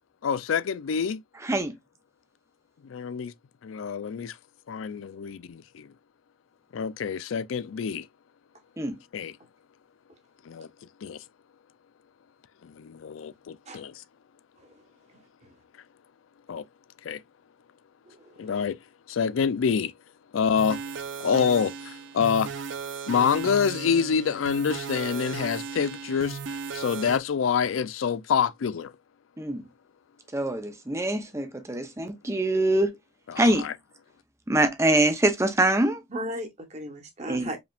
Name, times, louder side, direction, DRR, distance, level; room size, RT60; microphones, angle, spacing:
voice 1, 0.2-1.2 2.9-3.3 3.6-4.3 4.7-5.9 6.7-8.1 9.1-9.3 10.5-10.7 11.0-11.2 12.6-13.9 16.5-16.6 17.0-17.2 18.4-18.8 19.1-19.9 20.3-20.8 21.2-22.5 23.1-28.9 33.3-33.7, left 6 dB, 90° left, 0.4 m, -27 dB
voice 2, 1.4-1.7 8.8-9.0 29.4-29.6 30.3-33.0 33.4-33.7 34.5-36.0 37.3-37.5, right 1 dB, 15° right, 0.7 m, -24 dB
voice 3, 18.1-18.6 36.1-37.6, equal, 35° right, 1.2 m, -36 dB
sound 1, 20.6-27.2, right 5 dB, 70° right, 0.5 m, -36 dB
4.9 x 3.4 x 2.4 m
head